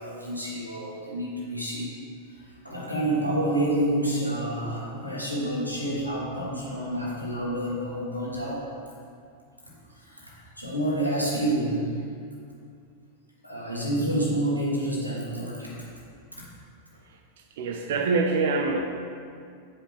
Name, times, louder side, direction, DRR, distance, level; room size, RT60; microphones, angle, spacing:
voice 1, 0.0-1.9 2.3-8.6 10.0-11.8 13.4-15.7 16.4-16.5, right 1 dB, 90° right, -5 dB, 1.4 m, -28 dB
voice 2, 17.6-18.8, right 3 dB, 55° right, 4 dB, 0.4 m, -24 dB
8.8 x 5.1 x 3.2 m, 2.3 s
figure-of-eight pair, 90°, 0 cm